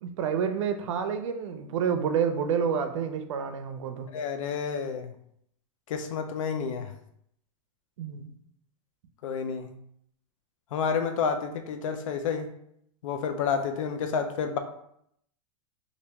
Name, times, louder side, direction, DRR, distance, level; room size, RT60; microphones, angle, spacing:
voice 1, 0.0-4.1 8.0-8.3, right 7 dB, 70° right, 8 dB, 0.5 m, -29 dB
voice 2, 4.1-5.1 5.9-6.9 9.2-9.7 10.7-12.5 13.0-14.6, left 6 dB, 85° left, 6 dB, 0.4 m, -30 dB
2.9 x 2.6 x 3.3 m, 0.71 s
supercardioid pair, 170°, 17 cm